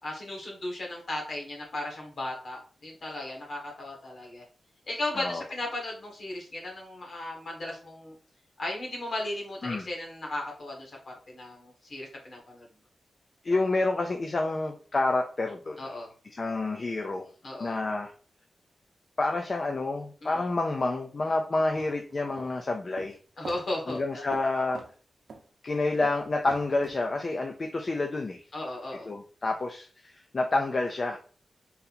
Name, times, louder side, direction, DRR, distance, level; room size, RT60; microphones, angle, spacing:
voice 1, 0.0-4.4 4.9-8.1 8.6-12.7 15.8-16.1 17.4-17.8 20.2-20.5 23.4-24.2 28.5-29.1, left 1 dB, 55° left, -1 dB, 1.7 m, -36 dB
voice 2, 13.4-15.9 16.3-17.3 17.6-18.1 19.2-23.2 23.9-24.8 25.6-28.4 29.1-31.2, left 2 dB, 35° left, 3 dB, 0.5 m, -29 dB
sound 1, 21.7-22.5 23.0-23.2 23.4-23.6 23.9-24.1 24.3-24.5 24.7-24.9 25.3-25.4 26.0-26.9, right 3 dB, 70° right, 0.7 m, -42 dB
4.0 x 2.8 x 4.1 m, 0.40 s
wide cardioid pair, 155°, 0 cm